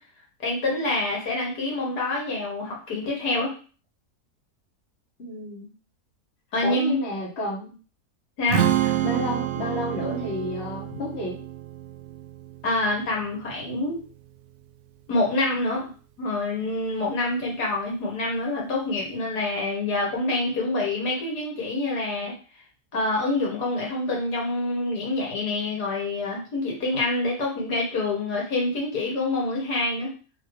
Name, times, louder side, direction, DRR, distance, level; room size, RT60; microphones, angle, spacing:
voice 1, 0.4-3.5 6.5-7.0 8.4-8.9 10.9-11.0 12.6-14.0 15.1-15.8 16.2-22.3 22.9-30.1, left 2 dB, 85° left, -3 dB, 2.0 m, -26 dB
voice 2, 5.2-5.7 6.6-7.7 9.0-11.3, left 1 dB, 45° left, -3 dB, 1.5 m, -31 dB
Strum, 8.5-14.8, right 11 dB, 75° right, 0.6 m, -29 dB
3.6 x 2.8 x 4.7 m, 0.38 s
omnidirectional pair, 1.7 m